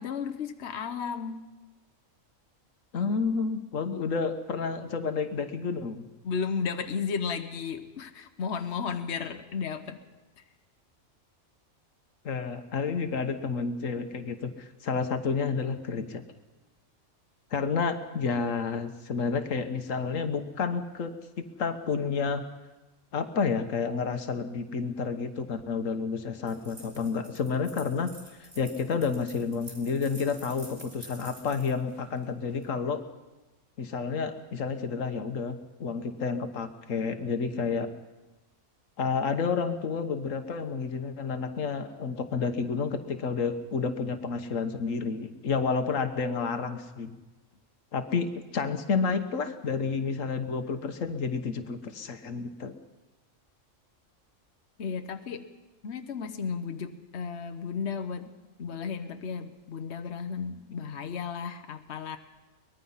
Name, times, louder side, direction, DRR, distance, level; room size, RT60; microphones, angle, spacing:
voice 1, 0.0-1.6 6.2-10.0 54.8-55.5 55.8-58.3 58.6-62.2, left 6 dB, 60° left, 7 dB, 1.2 m, -34 dB
voice 2, 2.9-6.1 12.2-16.2 17.5-21.1 21.4-22.4 23.1-28.1 28.4-33.0 33.8-37.9 39.0-47.1 47.9-48.3 48.5-52.7, left 5 dB, 85° left, 8 dB, 1.5 m, -30 dB
sound 1, 26.5-32.7, right 1 dB, 85° right, 4.6 m, -49 dB
23.5 x 20.0 x 5.7 m, 1.1 s
omnidirectional pair, 1.3 m